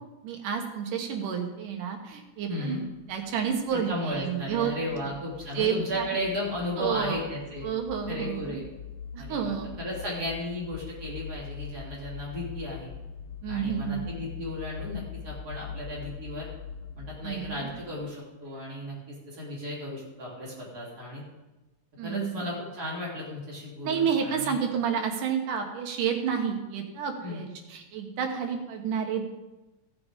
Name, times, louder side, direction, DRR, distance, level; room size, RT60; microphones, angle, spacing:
voice 1, 0.2-2.8 3.1-4.7 5.5-6.2 6.8-7.2 7.6-8.6 9.1-9.7 13.4-14.1 17.2-17.7 22.0-22.5 23.8-29.2, right 7 dB, 90° right, 3 dB, 2.8 m, -30 dB
voice 2, 2.5-2.8 3.7-7.7 8.1-8.7 9.2-12.9 13.5-16.5 16.9-21.2 22.0-24.6 27.2-27.4, left 1 dB, 30° right, -5 dB, 3.4 m, -35 dB
sound 1, 2.8-18.1, left 7 dB, 80° left, 1.5 m, -43 dB
16.0 x 7.7 x 3.6 m, 1.1 s
omnidirectional pair, 3.6 m